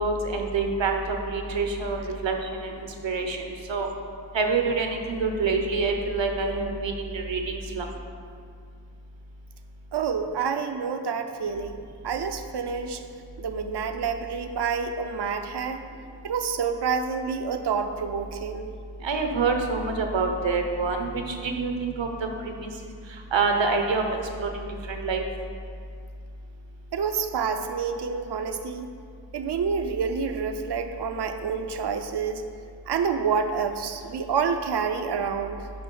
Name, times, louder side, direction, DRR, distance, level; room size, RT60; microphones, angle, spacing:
voice 1, 0.0-3.4 3.7-3.9 4.3-7.9 19.0-22.1 22.6-22.7 23.3-25.2, right 4 dB, 80° right, 4 dB, 1.0 m, -26 dB
voice 2, 9.9-13.0 13.4-15.9 16.2-18.7 26.9-28.9 29.3-32.4 32.9-35.6, right 6 dB, 60° right, 7 dB, 0.6 m, -28 dB
8.6 x 5.4 x 5.4 m, 2.3 s
wide cardioid pair, 85°, 44 cm